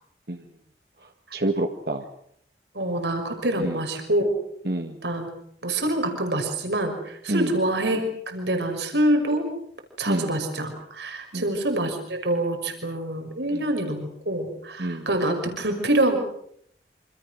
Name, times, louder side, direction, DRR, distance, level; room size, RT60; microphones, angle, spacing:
voice 1, 1.0-2.0 3.6-3.8 4.6-5.0 7.3-7.6 10.0-10.4 11.3-11.5 13.5-13.6 14.8-15.1, right 1 dB, 60° right, 4 dB, 1.8 m, -28 dB
voice 2, 2.7-4.3 5.0-5.3 5.6-9.5 10.0-16.2, right 1 dB, 80° right, 5 dB, 5.8 m, -26 dB
27.5 x 26.5 x 6.4 m, 0.69 s
head